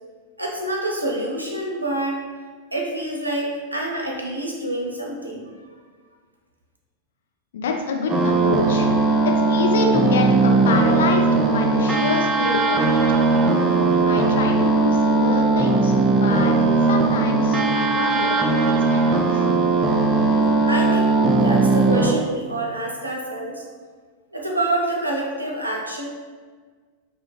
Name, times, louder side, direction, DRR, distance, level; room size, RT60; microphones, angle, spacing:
voice 1, 0.4-2.2 2.7-5.5 20.6-23.6 24.3-26.1, right 1 dB, 85° right, -1 dB, 0.4 m, -27 dB
voice 2, 7.5-8.9 9.2-13.4 14.1-16.5 16.9-19.5, left 4 dB, 60° left, 2 dB, 0.3 m, -27 dB
sound 1, 8.1-22.2, right 3 dB, 20° right, 0.3 m, -19 dB
2.3 x 2.1 x 2.9 m, 1.5 s
figure-of-eight pair, 90°, 0 cm